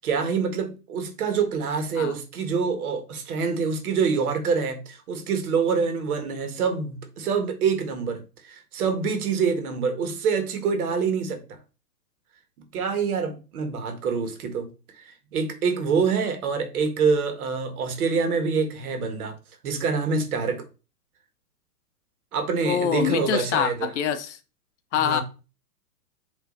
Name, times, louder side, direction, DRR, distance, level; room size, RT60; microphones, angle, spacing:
voice 1, 0.0-11.6 12.7-14.7 15.0-19.4 19.6-20.6 22.3-23.9 25.0-25.2, right 5 dB, 60° right, 1.9 m, -26 dB
voice 2, 22.6-24.4 24.9-25.2, left 9 dB, 45° left, 0.8 m, -25 dB
7.5 x 3.4 x 3.9 m
hypercardioid pair, 145°, 49 cm